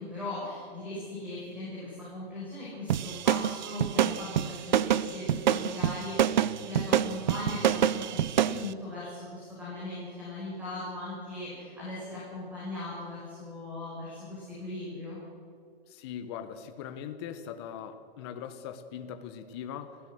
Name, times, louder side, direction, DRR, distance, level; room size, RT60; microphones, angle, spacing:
voice 1, 0.0-15.2, left 2 dB, 5° right, -9 dB, 6.0 m, -39 dB
sound 1, 2.9-8.6, right 10 dB, 45° right, 0.7 m, -26 dB
voice 2, 15.9-20.0, left 8 dB, 25° left, 9 dB, 1.3 m, -40 dB
26.0 x 16.5 x 6.5 m, 2.3 s
hypercardioid pair, 165°, 32 cm